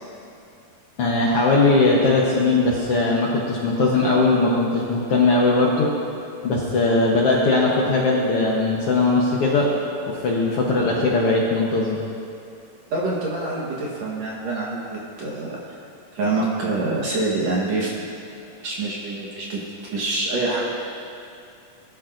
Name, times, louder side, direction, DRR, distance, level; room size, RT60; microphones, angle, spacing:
voice 1, 1.0-5.9 6.4-9.7 10.1-12.0, left 3 dB, 65° left, -3 dB, 1.5 m, -19 dB
voice 2, 12.9-15.8 16.1-18.1 18.6-19.6 19.9-20.7, right 2 dB, 60° right, -5 dB, 2.2 m, -26 dB
19.0 x 11.5 x 2.6 m, 2.5 s
omnidirectional pair, 3.8 m